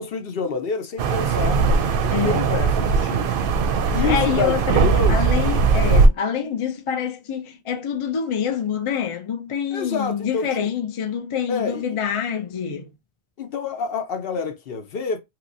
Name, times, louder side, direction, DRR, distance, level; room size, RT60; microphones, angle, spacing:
voice 1, 0.0-1.7 2.0-3.3 3.9-5.2 9.7-10.7 11.5-11.8 13.4-15.2, left 5 dB, 70° left, 0.9 m, -27 dB
sound 1, 1.0-6.1, right 4 dB, 65° right, 0.7 m, -19 dB
voice 2, 2.1-2.4 4.1-4.8 5.1-12.9, left 7 dB, 45° left, 0.4 m, -26 dB
3.0 x 2.9 x 2.5 m
omnidirectional pair, 1.0 m